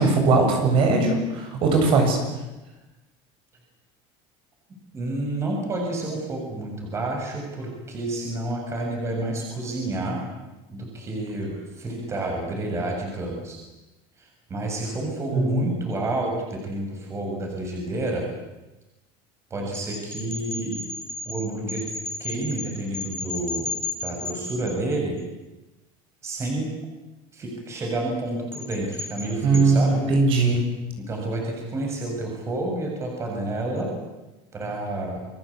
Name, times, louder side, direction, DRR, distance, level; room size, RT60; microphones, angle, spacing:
voice 1, 0.0-2.2 15.3-15.6 29.4-30.6, right 3 dB, 45° right, 3 dB, 8.0 m, -19 dB
voice 2, 4.9-10.2 10.7-13.6 14.2-18.2 19.5-20.8 21.3-21.8 22.2-23.7 24.0-25.2 26.2-26.7 27.3-30.0 31.0-33.9 34.5-35.2, right 2 dB, 20° right, 1 dB, 7.1 m, -29 dB
sound 1, 19.7-25.2 28.5-29.6, left 3 dB, 5° left, 5.8 m, -34 dB
30.0 x 22.5 x 8.6 m, 1.0 s
cardioid pair, 155°, 12 cm